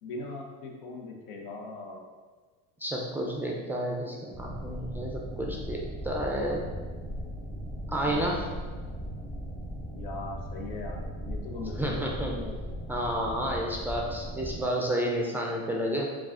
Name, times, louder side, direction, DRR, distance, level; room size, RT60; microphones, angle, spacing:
voice 1, 0.0-2.1 8.0-8.4 9.9-12.6, left 3 dB, 80° left, 1 dB, 0.9 m, -40 dB
voice 2, 2.8-6.6 7.9-8.5 11.8-12.4 12.9-16.1, right 1 dB, 5° right, -2 dB, 0.4 m, -31 dB
sound 1, 4.3-14.6, equal, 10° left, 0.9 m, -38 dB
4.8 x 2.4 x 3.6 m, 1.5 s
cardioid pair, 135°, 31 cm